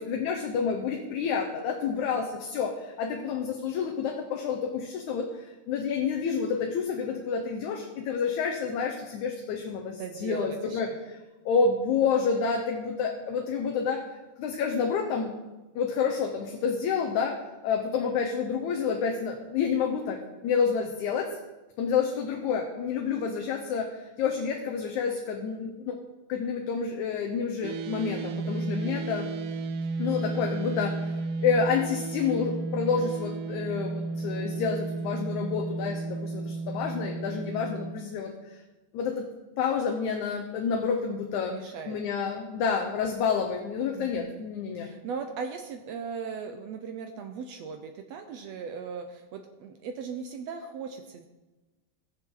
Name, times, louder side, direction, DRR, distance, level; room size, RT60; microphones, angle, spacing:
voice 1, 0.0-11.2 11.5-14.0 14.4-15.3 15.8-17.4 17.6-20.2 20.4-21.3 21.8-26.0 26.3-29.4 30.0-38.6 38.9-39.3 39.6-41.6 41.9-44.9, left 6 dB, 75° left, 1 dB, 2.3 m, -29 dB
voice 2, 10.0-11.0 29.9-30.0 41.5-42.0 43.9-44.4 44.8-51.3, right 5 dB, 70° right, 5 dB, 1.7 m, -38 dB
sound 1, 27.6-37.9, right 3 dB, 90° right, 2.3 m, -33 dB
19.0 x 6.7 x 3.8 m, 1.1 s
omnidirectional pair, 3.5 m